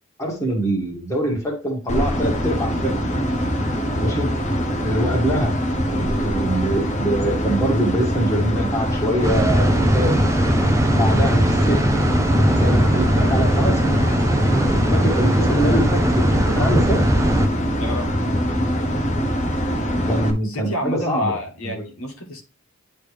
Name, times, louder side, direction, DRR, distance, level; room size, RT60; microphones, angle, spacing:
voice 1, 0.2-2.9 4.0-4.3 4.8-5.6 5.9-10.1 10.9-11.9 12.5-13.8 14.5-17.0 20.1-21.4, right 1 dB, 15° left, -2 dB, 1.7 m, -24 dB
sound 1, 1.9-20.3, equal, 35° left, 0.7 m, -23 dB
sound 2, 9.2-17.5, right 1 dB, 15° right, 0.4 m, -20 dB
voice 2, 17.8-18.1 20.4-22.4, left 1 dB, 80° left, 2 dB, 1.5 m, -28 dB
10.0 x 3.4 x 3.3 m, 0.34 s
head